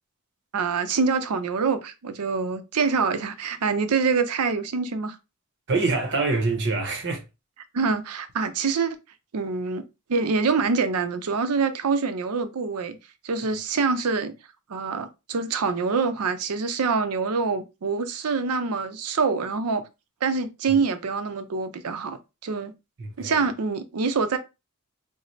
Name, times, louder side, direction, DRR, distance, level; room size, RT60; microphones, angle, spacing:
voice 1, 0.5-5.2 7.7-9.0 9.3-9.8 10.1-13.0 13.2-14.3 14.7-19.8 20.2-22.7 23.2-24.4, right 4 dB, 85° right, 0.5 m, -25 dB
voice 2, 5.7-7.2 23.0-23.5, right 3 dB, 55° right, 0.7 m, -25 dB
3.9 x 2.0 x 3.1 m
head